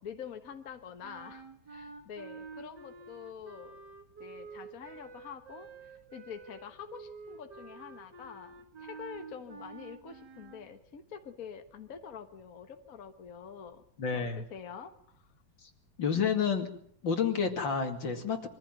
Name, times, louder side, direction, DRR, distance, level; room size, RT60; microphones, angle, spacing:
voice 1, 0.0-3.8 4.2-15.3, left 7 dB, 50° left, 7 dB, 1.7 m, -46 dB
sound 1, 1.0-10.7, right 4 dB, 60° right, 2.8 m, -49 dB
voice 2, 14.0-14.4 16.0-16.7 17.0-18.5, left 6 dB, 80° left, 5 dB, 3.2 m, -29 dB
23.5 x 15.0 x 9.4 m, 0.64 s
omnidirectional pair, 2.1 m